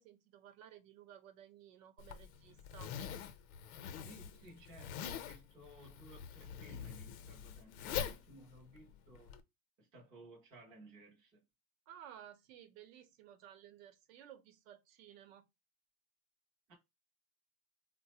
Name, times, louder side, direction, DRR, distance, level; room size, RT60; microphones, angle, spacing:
voice 1, 0.0-2.9 11.9-15.5, right 10 dB, 70° right, 0.8 m, -56 dB
Zipper (clothing), 2.0-9.4, left 8 dB, 85° left, 0.6 m, -44 dB
voice 2, 4.0-9.4 9.8-11.4 16.7-16.8, right 1 dB, 15° right, 0.3 m, -58 dB
3.9 x 2.1 x 2.8 m
supercardioid pair, 180°, 42 cm